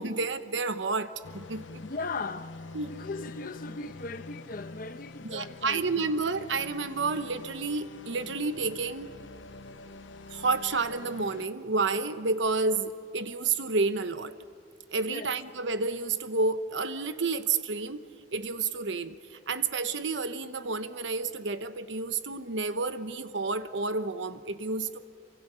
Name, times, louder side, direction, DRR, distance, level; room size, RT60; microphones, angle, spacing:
voice 1, 0.0-1.8 2.7-2.9 5.2-9.1 10.3-14.3 14.9-25.0, right 4 dB, 80° right, 1.0 m, -30 dB
sound 1, 1.2-11.5, left 3 dB, 90° left, 0.7 m, -46 dB
voice 2, 1.8-2.5 2.9-6.1 15.0-15.3, left 3 dB, 50° left, 0.9 m, -38 dB
27.0 x 24.5 x 5.7 m
head